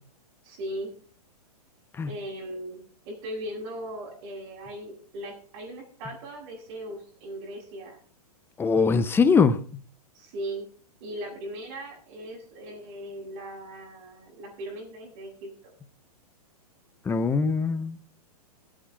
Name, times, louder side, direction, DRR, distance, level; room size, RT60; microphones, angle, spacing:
voice 1, 0.4-0.9 2.1-8.0 10.1-10.7 11.0-15.5, right 1 dB, 45° right, 7.8 m, -38 dB
voice 2, 8.6-9.6 17.1-18.0, left 5 dB, 10° left, 0.8 m, -22 dB
21.0 x 9.0 x 3.5 m
hypercardioid pair, 135°, 20 cm